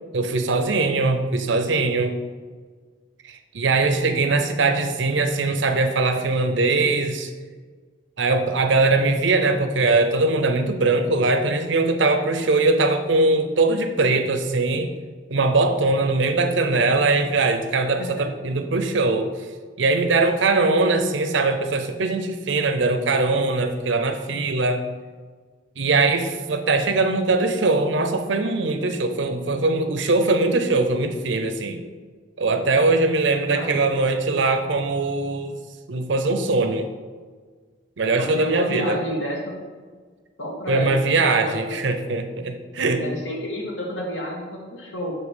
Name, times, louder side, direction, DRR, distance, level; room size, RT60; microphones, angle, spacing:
voice 1, 0.1-2.1 3.2-7.3 8.2-14.9 15.3-19.3 19.8-24.8 25.8-31.8 32.4-35.6 35.9-36.9 38.0-39.0 40.7-43.0, right 3 dB, 75° right, 7 dB, 0.7 m, -21 dB
voice 2, 33.3-34.1 38.2-39.5 40.4-41.8 43.0-45.1, equal, 85° left, -2 dB, 1.9 m, -30 dB
7.3 x 3.3 x 6.2 m, 1.5 s
head